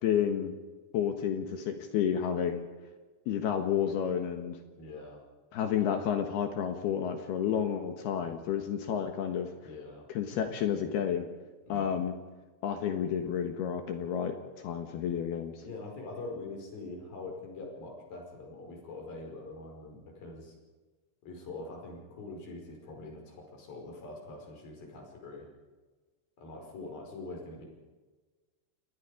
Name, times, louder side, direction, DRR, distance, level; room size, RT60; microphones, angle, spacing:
voice 1, 0.0-0.5 0.9-2.7 3.3-4.6 5.5-9.5 10.1-11.3 11.7-12.1 12.6-14.4 14.6-15.6, left 8 dB, 65° left, 6 dB, 3.1 m, -30 dB
voice 2, 4.8-5.2 9.6-10.1 11.7-12.0 15.6-20.5 21.2-25.5 26.4-27.7, left 2 dB, 50° left, 1 dB, 6.8 m, -44 dB
28.0 x 20.0 x 5.1 m, 1.3 s
omnidirectional pair, 5.3 m